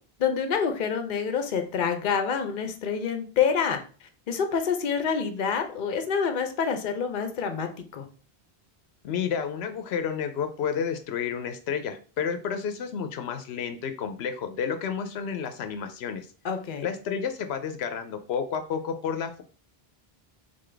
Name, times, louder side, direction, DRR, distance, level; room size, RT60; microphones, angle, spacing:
voice 1, 0.2-3.8 4.3-8.1 16.4-16.9, left 6 dB, 55° left, 7 dB, 0.8 m, -27 dB
voice 2, 9.0-16.3 16.8-19.4, left 7 dB, 85° left, 7 dB, 0.8 m, -31 dB
3.8 x 3.7 x 3.3 m, 0.39 s
omnidirectional pair, 1.0 m